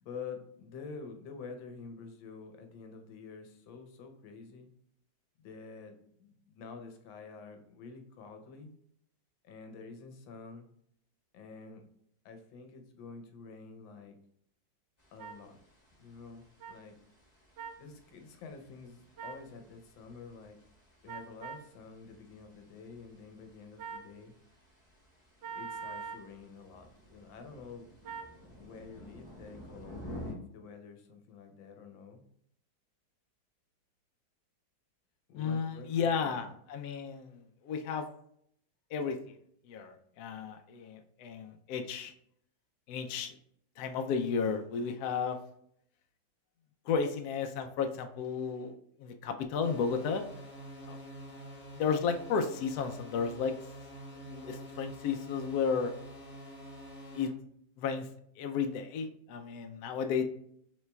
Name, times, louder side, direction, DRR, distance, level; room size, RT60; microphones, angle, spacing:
voice 1, 0.0-4.7 5.4-5.9 6.2-8.7 9.4-10.7 11.3-11.9 12.2-14.2 15.1-15.6 16.0-16.9 17.8-20.6 21.0-24.3 25.5-27.9 28.6-32.2 35.3-36.5, left 5 dB, 90° left, 6 dB, 1.5 m, -48 dB
sound 1, 15.0-30.3, equal, 25° left, 1.1 m, -53 dB
sound 2, 15.2-15.4 16.6-16.7 17.6-17.8 19.2-19.5 21.1-21.7 23.8-24.1 25.4-26.3 28.0-28.3, right 6 dB, 70° right, 1.2 m, -42 dB
voice 2, 35.3-38.1 38.9-39.2 39.7-42.1 42.9-43.4 43.8-45.4 46.9-48.7 49.0-50.2 50.9-51.0 51.7-53.5 54.2-55.9 57.1-57.3 57.8-58.1 58.4-60.2, left 6 dB, 70° left, 6 dB, 0.9 m, -33 dB
sound 3, 49.6-57.3, equal, 55° left, 1.3 m, -47 dB
6.0 x 3.3 x 2.2 m, 0.68 s
omnidirectional pair, 2.0 m